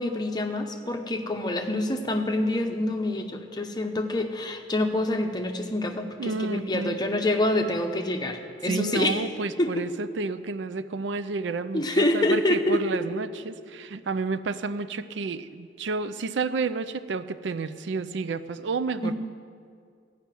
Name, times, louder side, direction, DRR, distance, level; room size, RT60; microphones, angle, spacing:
voice 1, 0.0-9.2 9.6-9.9 11.7-13.0 19.0-19.1, left 1 dB, 20° left, 4 dB, 0.8 m, -26 dB
voice 2, 6.2-7.0 8.6-19.1, right 4 dB, 85° right, 13 dB, 0.5 m, -30 dB
14.0 x 5.8 x 9.0 m, 2.3 s
head